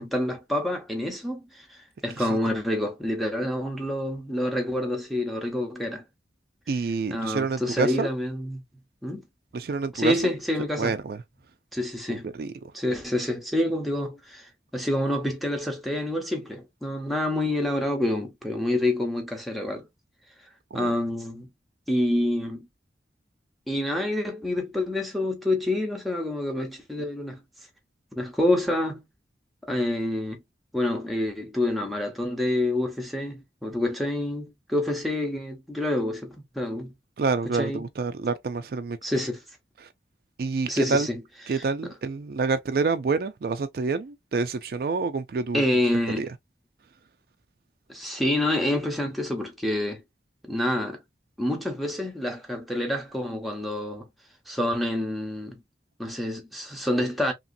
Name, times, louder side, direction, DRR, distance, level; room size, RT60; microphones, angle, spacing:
voice 1, 0.0-6.0 7.1-8.6 9.0-9.2 9.9-11.0 11.7-12.4 12.7-19.9 20.7-21.5 21.9-22.7 23.7-27.4 28.1-29.0 29.7-30.4 30.7-36.9 37.5-37.8 39.0-39.4 40.7-41.2 41.5-41.9 45.5-46.3 47.9-50.0 50.4-51.0 51.4-54.1 54.5-55.6 56.0-57.3, left 1 dB, ahead, 0.7 m, -27 dB
voice 2, 6.7-8.1 9.5-10.2 10.8-11.2 12.1-12.7 20.7-20.9 37.2-39.0 39.8-39.9 40.4-41.1 41.5-45.6 46.2-46.3, right 4 dB, 55° right, 0.4 m, -27 dB
2.9 x 2.7 x 2.5 m
head